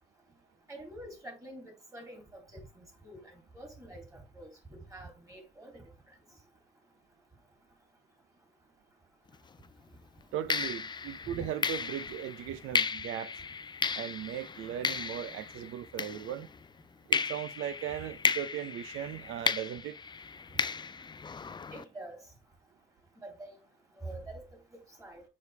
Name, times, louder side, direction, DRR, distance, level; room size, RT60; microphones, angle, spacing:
voice 1, 0.7-5.9 11.3-11.5 21.7-22.2 23.2-23.6 24.0-24.5 24.7-25.2, right 1 dB, 15° right, 3.1 m, -46 dB
sound 1, 9.3-9.6 10.5-16.7 17.1-21.8, left 5 dB, 20° left, 0.4 m, -34 dB
voice 2, 10.3-13.4 13.9-16.5 17.1-20.0, right 10 dB, 85° right, 0.7 m, -38 dB
6.6 x 4.9 x 3.4 m
cardioid pair, 90°, 20 cm